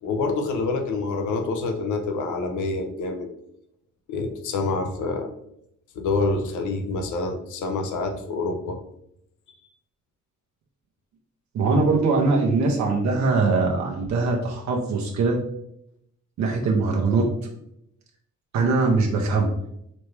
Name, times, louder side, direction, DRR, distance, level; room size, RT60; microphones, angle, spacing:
voice 1, 0.0-3.3 4.1-5.3 5.9-8.8 9.5-9.7, left 3 dB, 75° left, 4 dB, 0.8 m, -27 dB
voice 2, 11.5-15.4 16.4-17.3 18.5-19.5, right 3 dB, 70° right, 0 dB, 0.8 m, -21 dB
4.2 x 3.2 x 3.3 m, 0.76 s
cardioid pair, 90°, 30 cm